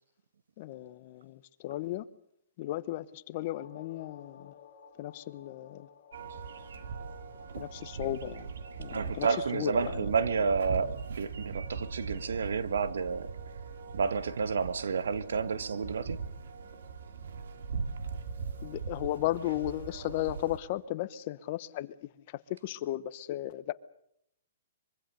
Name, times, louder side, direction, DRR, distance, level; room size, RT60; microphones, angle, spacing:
voice 1, 0.6-2.1 2.6-4.6 5.0-5.9 7.6-8.5 8.8-9.3 9.5-10.1 18.6-23.7, left 15 dB, 35° left, 0.9 m, -35 dB
sound 1, 3.4-9.7, left 7 dB, 55° left, 3.5 m, -57 dB
sound 2, 6.1-20.6, right 5 dB, 70° right, 2.5 m, -40 dB
voice 2, 8.9-13.3 13.9-16.2, right 5 dB, 90° right, 1.6 m, -30 dB
24.0 x 23.5 x 6.8 m
hypercardioid pair, 165°, 0 cm